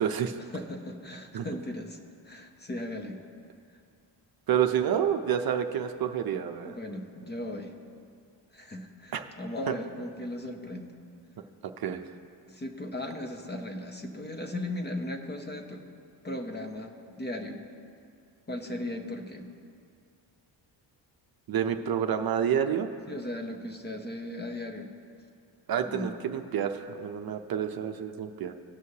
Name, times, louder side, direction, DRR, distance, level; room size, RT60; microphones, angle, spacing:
voice 1, 0.0-0.4 1.3-1.5 4.5-6.8 9.1-9.2 9.7-9.8 11.6-12.0 21.5-22.9 25.7-28.5, right 9 dB, 55° right, 6 dB, 0.6 m, -28 dB
voice 2, 0.5-2.0 2.2-3.2 6.6-7.7 8.5-10.9 12.5-15.9 16.2-17.6 18.5-19.5 23.1-24.9 25.8-26.1, left 1 dB, 25° left, 4 dB, 0.8 m, -37 dB
18.5 x 6.2 x 2.8 m, 2.4 s
cardioid pair, 120°, 44 cm